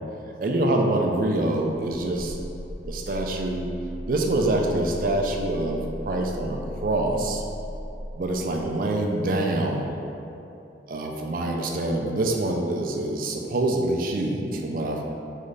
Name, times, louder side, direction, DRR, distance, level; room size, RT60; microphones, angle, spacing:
voice 1, 0.4-2.4 2.8-3.7 4.1-7.4 8.2-10.0 10.9-15.0, right 2 dB, 50° right, 2 dB, 0.4 m, -25 dB
sound 1, 1.5-8.9, equal, 70° right, 0.9 m, -37 dB
4.1 x 3.6 x 3.2 m, 2.9 s
head